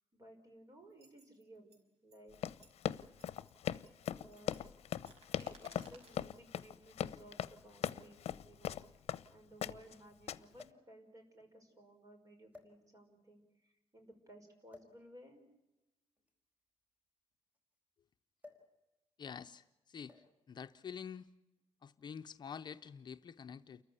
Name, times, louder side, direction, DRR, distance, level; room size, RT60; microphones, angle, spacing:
voice 1, 0.1-2.4 4.1-4.6 5.3-15.5, right 1 dB, 30° right, 5 dB, 5.3 m, -58 dB
sound 1, 0.9-1.8 2.1-2.8 3.2-3.5 3.9-6.2 6.6-6.9, right 3 dB, 80° right, 5.4 m, -63 dB
Run, 2.3-9.3 9.6-9.9 10.3-10.6, left 10 dB, 75° left, 0.7 m, -39 dB
sound 2, 10.5-10.9 11.8-12.0 12.5-13.2 14.7-15.0 16.2-17.8 18.4-18.8 19.0-19.3 20.1-20.5 21.4-21.7, left 3 dB, 15° right, 4.5 m, -59 dB
voice 2, 19.2-20.2 20.5-21.3 21.8-23.8, left 7 dB, 45° left, 8 dB, 0.7 m, -47 dB
29.5 x 14.5 x 8.4 m, 0.97 s
wide cardioid pair, 150°, 11 cm